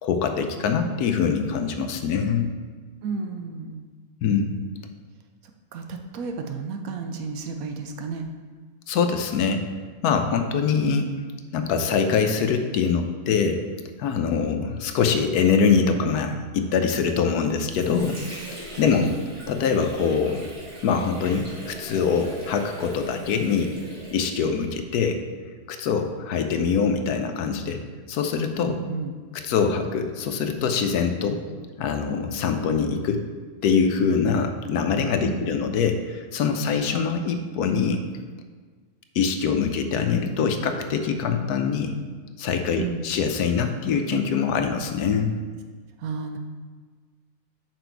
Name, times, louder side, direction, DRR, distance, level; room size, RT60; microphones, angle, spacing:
voice 1, 0.0-2.5 4.2-4.6 8.9-9.6 10.0-11.1 11.5-13.6 14.0-18.2 18.8-19.1 19.5-20.5 20.8-23.8 24.1-25.2 25.7-27.8 28.1-28.8 29.3-31.4 31.8-33.2 33.6-38.0 39.2-41.9 42.4-45.3, left 6 dB, 80° left, 6 dB, 1.1 m, -23 dB
voice 2, 3.0-3.8 5.7-8.3 18.9-19.1 28.7-29.2 35.2-35.6 42.8-43.1 46.0-46.4, right 4 dB, 70° right, 5 dB, 1.0 m, -32 dB
Water / Sink (filling or washing), 17.2-24.9, equal, 90° right, 2.5 m, -40 dB
6.1 x 5.1 x 4.6 m, 1.5 s
omnidirectional pair, 1.7 m